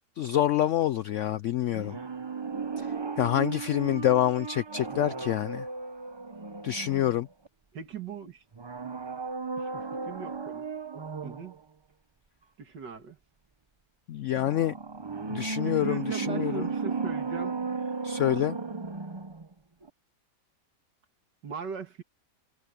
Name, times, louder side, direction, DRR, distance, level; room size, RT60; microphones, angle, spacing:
voice 1, 0.2-2.0 2.8-2.9 3.2-5.7 6.6-7.3 14.1-14.7 15.3-16.7 18.0-18.6, left 12 dB, 80° left, 0.6 m, -27 dB
sound 1, 1.7-7.5 8.5-11.5 14.3-19.5 19.8-19.9, right 4 dB, 45° right, 0.3 m, -35 dB
voice 2, 7.7-8.4 9.6-10.7 11.2-11.6 12.6-13.2 15.6-17.5 21.4-22.0, right 6 dB, 90° right, 2.7 m, -39 dB
omnidirectional pair, 1.8 m